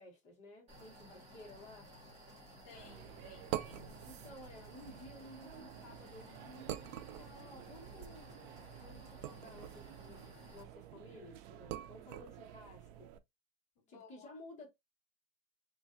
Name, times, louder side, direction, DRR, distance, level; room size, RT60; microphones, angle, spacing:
voice 1, 0.0-1.9 4.0-13.1 13.9-14.7, left 2 dB, 20° left, 1.1 m, -55 dB
sound 1, 0.7-10.6, equal, 20° right, 1.0 m, -56 dB
voice 2, 2.6-4.1 13.8-14.4, left 6 dB, 55° left, 1.2 m, -58 dB
sound 2, 2.7-13.2, right 12 dB, 85° right, 0.5 m, -47 dB
3.3 x 2.5 x 2.5 m
cardioid pair, 180°, 31 cm